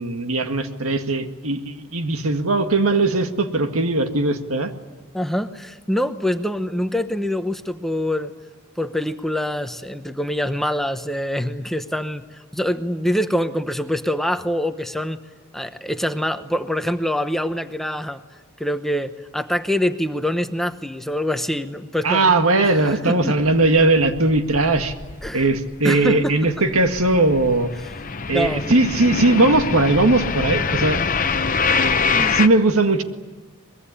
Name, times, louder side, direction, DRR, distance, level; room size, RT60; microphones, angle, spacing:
voice 1, 0.0-4.7 22.0-24.9 25.3-27.7 28.3-31.0 32.3-33.0, right 2 dB, 90° right, 6 dB, 1.9 m, -19 dB
voice 2, 5.1-8.3 8.8-15.2 15.5-18.2 18.6-23.3 25.2-25.5 25.8-26.4 28.3-28.6 32.1-32.4, equal, ahead, 8 dB, 0.9 m, -25 dB
sound 1, 23.4-25.8 26.0-32.5, left 5 dB, 40° left, 0.9 m, -25 dB
23.5 x 21.5 x 10.0 m, 1.2 s
head